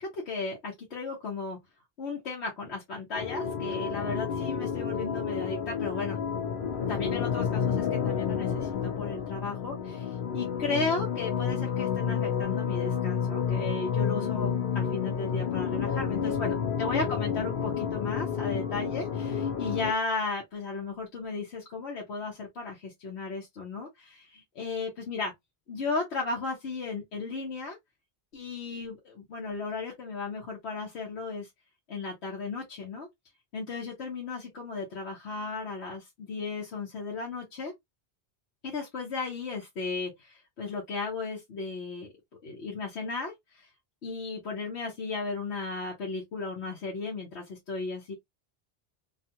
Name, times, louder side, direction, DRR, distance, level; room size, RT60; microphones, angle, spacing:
voice 1, 0.0-1.6 2.0-6.2 6.9-25.3 25.7-27.8 28.3-31.5 31.9-33.1 33.5-37.7 38.6-42.1 42.4-43.3 44.0-48.1, left 4 dB, 85° left, 1.2 m, -35 dB
sound 1, 3.1-19.9, left 7 dB, 60° left, 0.7 m, -30 dB
2.6 x 2.3 x 2.7 m
omnidirectional pair, 1.1 m